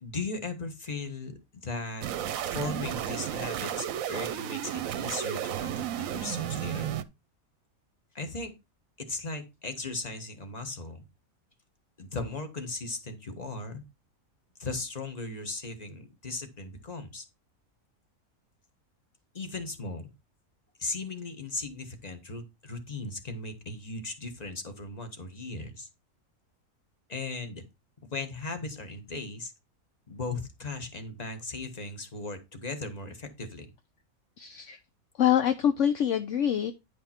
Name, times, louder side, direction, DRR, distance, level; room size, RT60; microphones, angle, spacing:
voice 1, 0.0-2.0 2.5-6.9 8.1-8.5 9.0-11.0 12.0-13.8 14.6-17.3 19.3-20.1 20.8-25.9 27.1-27.6 28.1-29.5 30.1-33.7, left 3 dB, 30° left, 7 dB, 1.5 m, -37 dB
sound 1, 2.0-7.0, right 10 dB, 70° right, 1.1 m, -33 dB
voice 2, 34.4-34.8 35.1-36.7, left 9 dB, 65° left, 10 dB, 0.9 m, -25 dB
10.5 x 5.3 x 4.4 m, 0.24 s
omnidirectional pair, 1.5 m